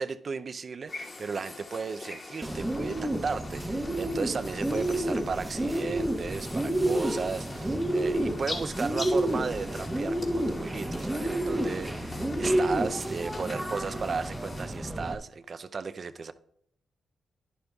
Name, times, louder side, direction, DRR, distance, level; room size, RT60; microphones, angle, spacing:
voice 1, 0.0-16.3, right 5 dB, 50° right, 0.5 m, -35 dB
sound 1, 0.9-14.7, left 3 dB, 45° left, 2.6 m, -43 dB
Bird, 2.4-15.1, right 1 dB, 15° right, 0.9 m, -30 dB
11.5 x 10.5 x 2.4 m
cardioid pair, 65°, 0 cm